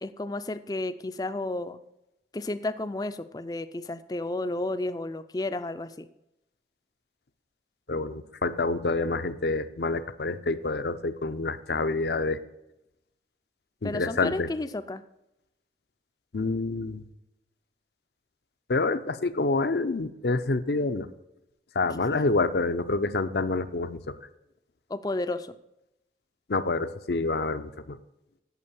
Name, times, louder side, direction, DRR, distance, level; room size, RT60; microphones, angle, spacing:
voice 1, 0.0-1.8 2.3-6.1 13.8-15.0 24.9-25.5, left 2 dB, 20° left, 12 dB, 0.4 m, -32 dB
voice 2, 7.9-12.4 13.8-14.5 16.3-17.0 18.7-21.1 21.7-24.0 26.5-28.0, left 3 dB, 70° left, 12 dB, 0.6 m, -27 dB
8.5 x 7.3 x 6.9 m, 0.90 s
head